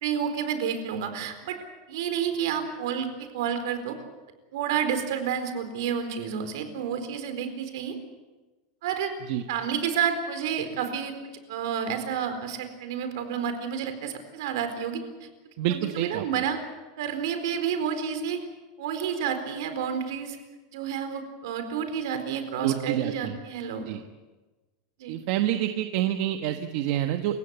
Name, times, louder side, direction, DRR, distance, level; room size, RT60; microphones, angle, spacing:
voice 1, 0.0-1.6 1.9-4.0 4.5-8.0 8.8-9.1 9.5-11.1 11.5-15.3 15.7-16.6 17.0-18.4 18.8-20.4 20.7-23.9 25.0-25.1, right 8 dB, 70° right, 8 dB, 4.3 m, -30 dB
voice 2, 15.6-16.2 22.6-23.4 23.9-24.0 25.1-27.4, right 12 dB, 50° right, 7 dB, 1.3 m, -27 dB
28.5 x 16.0 x 8.3 m, 1.2 s
supercardioid pair, 170°, 2 cm